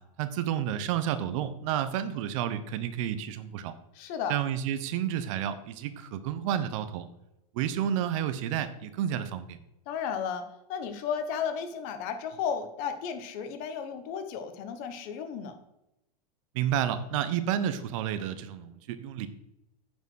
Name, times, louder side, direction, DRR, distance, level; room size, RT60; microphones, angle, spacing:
voice 1, 0.2-3.7 4.3-7.1 7.5-9.6 16.5-19.3, right 10 dB, 55° right, 11 dB, 1.0 m, -30 dB
voice 2, 3.9-4.3 9.9-10.4 10.7-15.6, left 7 dB, 45° left, 9 dB, 1.4 m, -33 dB
9.4 x 5.2 x 6.4 m, 0.86 s
hypercardioid pair, 125°, 20 cm